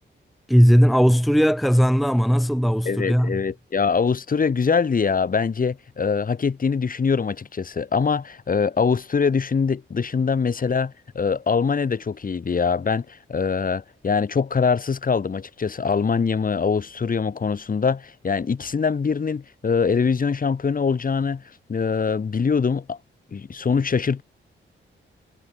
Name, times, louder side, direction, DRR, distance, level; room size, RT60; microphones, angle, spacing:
voice 1, 0.5-3.4, equal, ahead, 0.9 m, -18 dB
voice 2, 2.9-23.0 23.3-24.2, left 5 dB, 45° left, 4.0 m, -23 dB
wide cardioid pair, 120°, 21 cm